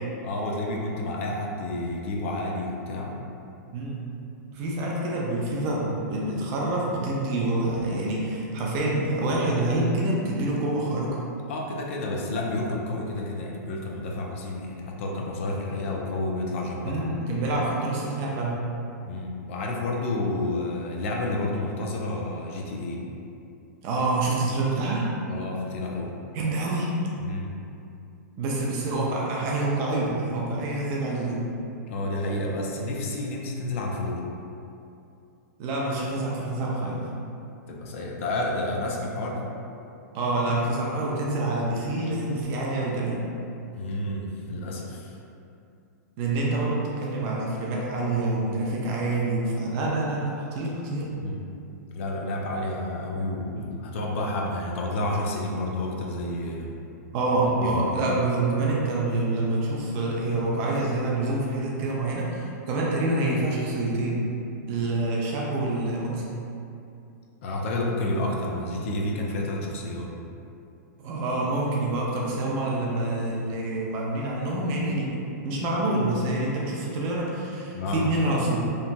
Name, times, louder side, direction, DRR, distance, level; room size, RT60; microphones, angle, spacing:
voice 1, 0.2-3.2 11.5-17.1 19.0-23.0 25.3-26.1 27.2-27.5 31.9-34.2 37.7-39.5 43.7-45.2 51.1-51.4 51.9-56.8 57.6-58.0 67.4-70.1 77.7-78.1, left 2 dB, 45° left, -1 dB, 0.4 m, -30 dB
voice 2, 3.7-4.1 4.5-11.2 16.8-18.6 23.8-25.1 26.3-26.9 28.4-31.5 35.6-37.1 40.1-43.2 46.2-51.1 53.6-53.7 57.1-64.2 64.7-66.3 71.0-78.6, right 2 dB, 25° right, -3 dB, 0.3 m, -27 dB
2.9 x 2.2 x 2.5 m, 2.6 s
supercardioid pair, 165°, 9 cm